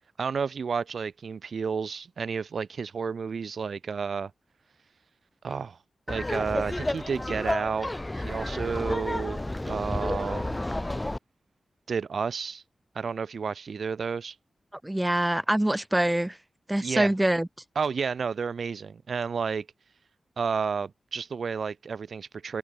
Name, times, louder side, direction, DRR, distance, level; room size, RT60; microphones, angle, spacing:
voice 1, 0.2-4.3 5.4-5.8 6.1-10.6 11.9-12.6 13.0-14.4 16.8-17.1 17.8-19.7 20.4-22.6, right 5 dB, 75° right, 2.1 m, -31 dB
Laughter, 6.1-11.2, left 1 dB, 20° left, 1.2 m, -31 dB
voice 2, 14.8-16.4 16.7-17.5, right 1 dB, 15° right, 2.4 m, -25 dB
open air
cardioid pair, 45°, 0 cm